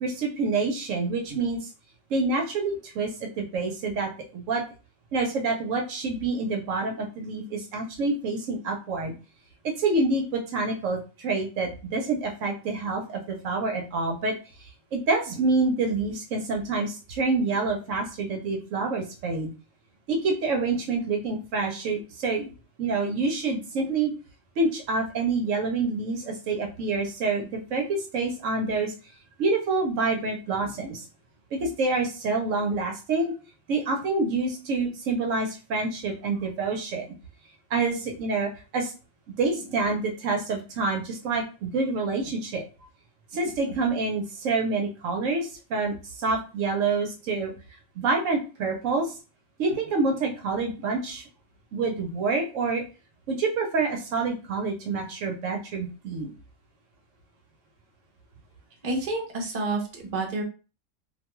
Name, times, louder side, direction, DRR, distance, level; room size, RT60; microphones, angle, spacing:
voice 1, 0.0-1.7 2.1-4.6 5.1-9.1 9.6-19.5 20.1-22.5 22.8-24.1 24.6-28.9 29.4-31.0 31.5-33.3 33.7-37.1 37.7-38.9 39.4-42.6 43.3-47.5 48.0-49.1 49.6-51.2 51.7-52.8 53.3-56.3, right 3 dB, 70° right, 2 dB, 1.0 m, -27 dB
voice 2, 58.8-60.4, right 2 dB, 40° right, 0 dB, 0.7 m, -29 dB
2.5 x 2.2 x 2.9 m, 0.33 s
omnidirectional pair, 1.4 m